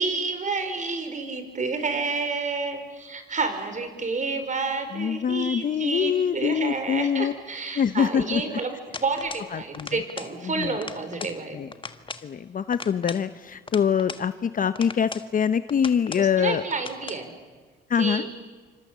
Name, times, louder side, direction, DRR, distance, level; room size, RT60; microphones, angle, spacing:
voice 1, 0.0-8.7 9.0-11.6 16.2-17.3 18.0-18.3, right 4 dB, 40° right, 8 dB, 4.7 m, -29 dB
voice 2, 4.9-7.3 7.7-8.6 9.5-10.0 10.4-10.8 11.5-11.7 12.2-16.6 17.9-18.2, left 7 dB, 45° left, 13 dB, 0.8 m, -24 dB
sound 1, 8.9-9.5 9.7-10.4 10.6-11.4 11.7-12.3 12.7-14.3 14.7-15.3 15.7-16.3 16.7-17.2, left 4 dB, 25° left, 1.4 m, -39 dB
28.0 x 25.5 x 7.5 m, 1.4 s
cardioid pair, 90°, 20 cm